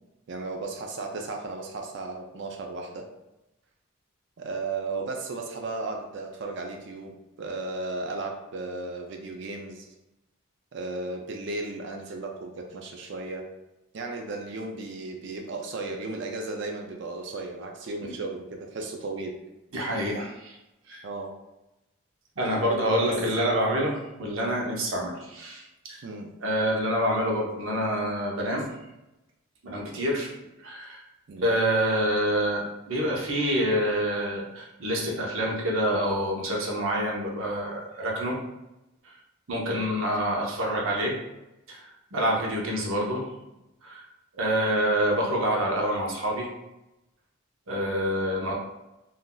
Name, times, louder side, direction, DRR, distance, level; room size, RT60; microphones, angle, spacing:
voice 1, 0.3-3.1 4.4-9.9 10.7-13.5 13.9-19.4 21.0-21.3 23.0-23.2 26.0-26.3 31.3-31.5 39.7-39.9, right 3 dB, 60° right, 2 dB, 0.4 m, -35 dB
voice 2, 19.7-20.6 20.9-21.0 22.4-26.0 26.4-28.7 29.6-30.3 30.6-31.0 31.4-38.4 39.5-41.2 41.7-43.2 43.8-44.0 44.4-46.5 47.7-48.5, equal, 80° right, -2 dB, 0.7 m, -27 dB
3.8 x 2.5 x 2.2 m, 0.94 s
head